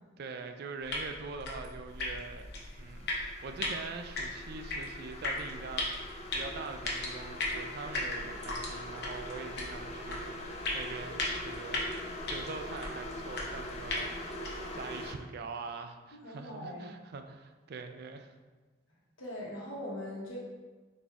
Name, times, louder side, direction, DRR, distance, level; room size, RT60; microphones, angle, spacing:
voice 1, 0.2-2.5 2.8-11.9 12.3-18.3, right 4 dB, 50° right, 7 dB, 0.3 m, -43 dB
sound 1, 0.8-14.8, left 2 dB, 55° left, 0.8 m, -38 dB
sound 2, 1.9-15.1, left 1 dB, 30° left, 0.4 m, -43 dB
voice 2, 16.2-16.8 19.2-20.4, left 1 dB, 80° left, -4 dB, 1.3 m, -41 dB
4.2 x 3.5 x 3.5 m, 1.3 s
head